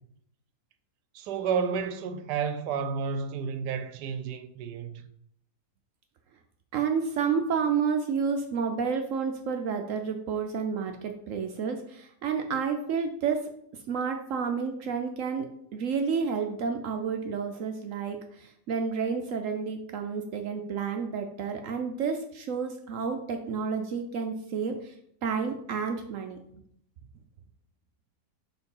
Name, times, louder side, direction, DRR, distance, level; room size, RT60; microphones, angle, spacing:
voice 1, 1.1-5.1, right 6 dB, 85° right, 1.2 m, -31 dB
voice 2, 6.7-13.5 13.9-15.5 15.7-24.9 25.2-26.6, right 6 dB, 70° right, 0.8 m, -30 dB
4.4 x 3.9 x 5.4 m
omnidirectional pair, 1.8 m